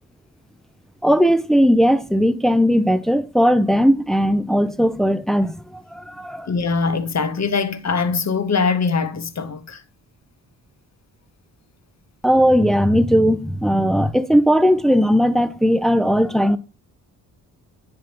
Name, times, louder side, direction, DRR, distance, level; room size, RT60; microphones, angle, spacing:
voice 1, 1.0-6.5 12.2-16.6, equal, ahead, 0.6 m, -17 dB
voice 2, 6.5-9.8, left 5 dB, 40° left, 1.1 m, -22 dB
10.0 x 3.8 x 2.9 m
supercardioid pair, 50°, 44 cm